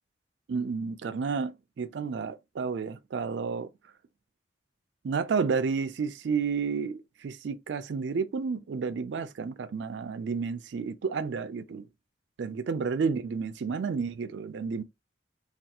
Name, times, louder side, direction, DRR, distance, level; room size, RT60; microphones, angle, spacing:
voice 1, 0.5-3.7 5.0-11.8 12.4-14.8, right 5 dB, 70° right, 0.4 m, -31 dB
3.3 x 2.3 x 2.8 m
head